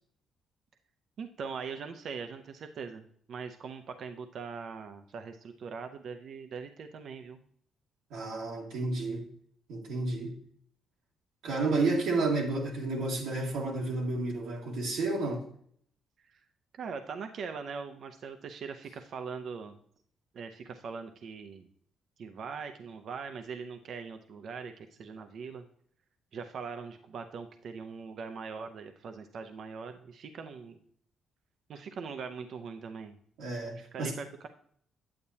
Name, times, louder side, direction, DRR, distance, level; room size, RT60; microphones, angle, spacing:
voice 1, 1.2-7.4 16.2-16.4 16.7-19.8 20.3-21.7 22.2-25.6 26.3-30.8 31.7-33.1 33.8-34.3, right 5 dB, 60° right, 0.6 m, -41 dB
voice 2, 8.1-9.3 9.7-10.4 11.4-15.4 33.4-34.1, right 3 dB, 90° right, 1.7 m, -31 dB
8.7 x 8.3 x 2.8 m
cardioid pair, 90°, 0 cm